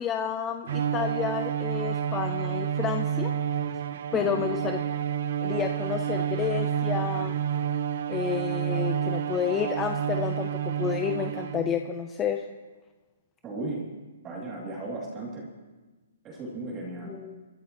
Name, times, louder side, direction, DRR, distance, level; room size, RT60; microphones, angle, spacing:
voice 1, 0.0-3.3 4.1-4.8 5.4-7.4 8.1-12.4 17.0-17.4, left 8 dB, 15° left, 6 dB, 0.5 m, -30 dB
Bowed string instrument, 0.7-11.9, right 9 dB, 50° right, 0.6 m, -29 dB
voice 2, 13.4-13.9 14.2-15.5 16.2-17.1, right 2 dB, 15° right, -2 dB, 2.6 m, -35 dB
28.0 x 12.5 x 3.0 m, 1.2 s
hypercardioid pair, 165°, 0 cm